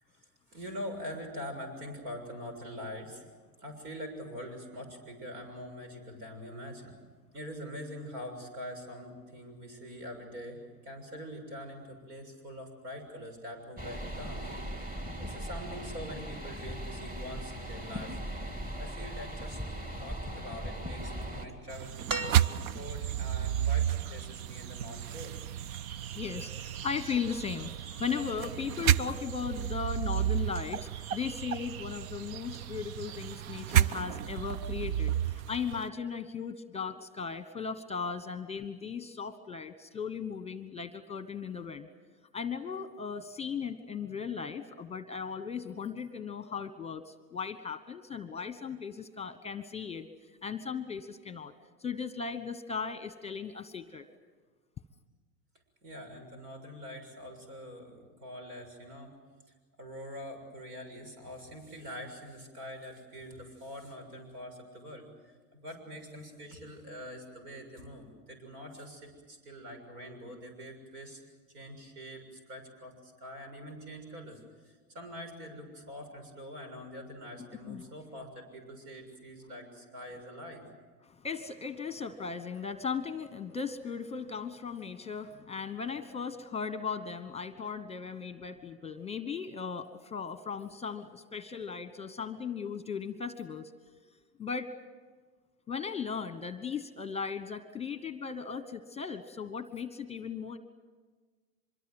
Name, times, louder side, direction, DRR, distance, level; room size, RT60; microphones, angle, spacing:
voice 1, 0.5-3.2 3.6-7.0 7.3-18.2 18.8-19.6 20.0-22.4 22.7-25.4 55.8-59.1 59.8-71.2 71.5-74.4 74.7-80.6, equal, 75° right, 6 dB, 6.9 m, -44 dB
sound 1, 13.8-21.5, equal, 15° right, 2.7 m, -39 dB
sound 2, 21.7-35.9, right 11 dB, 60° right, 0.8 m, -32 dB
sound 3, 22.1-23.1 24.6-24.7, right 3 dB, 40° right, 3.2 m, -36 dB
voice 2, 25.9-41.9 42.3-50.1 50.4-51.5 51.8-54.0 77.7-77.9 81.0-93.7 94.4-94.7 95.7-100.6, left 6 dB, 15° left, 12 dB, 1.1 m, -37 dB
25.0 x 22.5 x 8.0 m, 1.4 s
hypercardioid pair, 110°, 48 cm